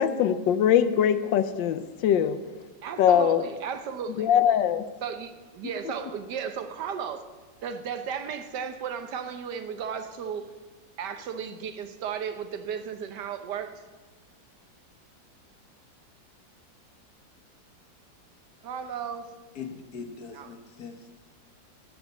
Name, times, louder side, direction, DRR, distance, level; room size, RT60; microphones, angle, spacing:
voice 1, 0.0-2.4 3.0-3.4 4.2-4.9, left 9 dB, 80° left, 12 dB, 1.4 m, -22 dB
voice 2, 2.8-4.3 5.0-7.3 7.6-10.5 11.0-13.8 18.6-19.3 20.3-20.5, right 7 dB, 70° right, 10 dB, 1.3 m, -35 dB
voice 3, 19.6-21.1, left 6 dB, 60° left, 6 dB, 1.5 m, -41 dB
13.0 x 5.3 x 8.3 m, 1.3 s
omnidirectional pair, 2.0 m